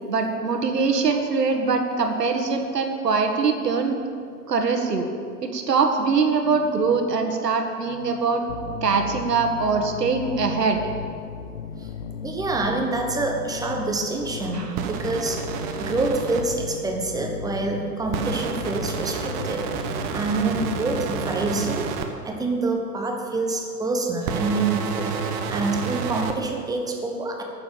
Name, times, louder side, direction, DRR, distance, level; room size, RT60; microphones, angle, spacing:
voice 1, 0.1-4.0 4.5-5.1 5.4-8.4 8.8-10.8 14.4-14.8, right 4 dB, 75° right, 4 dB, 1.7 m, -23 dB
sound 1, 8.5-22.0, left 7 dB, 45° left, 0.6 m, -36 dB
voice 2, 12.2-15.5 15.8-21.9 22.2-27.4, right 3 dB, 10° right, 2 dB, 0.9 m, -27 dB
sound 2, 14.8-16.4 18.1-22.1 24.2-26.3, right 6 dB, 30° right, 1.0 m, -30 dB
10.0 x 7.1 x 8.6 m, 2.3 s
hypercardioid pair, 115°, 48 cm